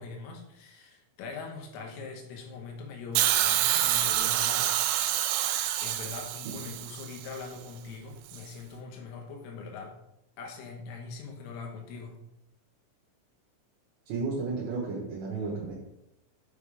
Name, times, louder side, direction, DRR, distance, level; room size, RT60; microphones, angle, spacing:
voice 1, 0.0-4.8 5.8-9.9 10.4-12.2, left 4 dB, 80° left, 1 dB, 3.6 m, -42 dB
Hiss, 3.2-7.3 8.3-8.4, right 12 dB, 90° right, 3.3 m, -27 dB
voice 2, 14.1-15.7, right 4 dB, 75° right, -4 dB, 3.0 m, -33 dB
8.4 x 3.0 x 4.9 m, 0.85 s
omnidirectional pair, 5.9 m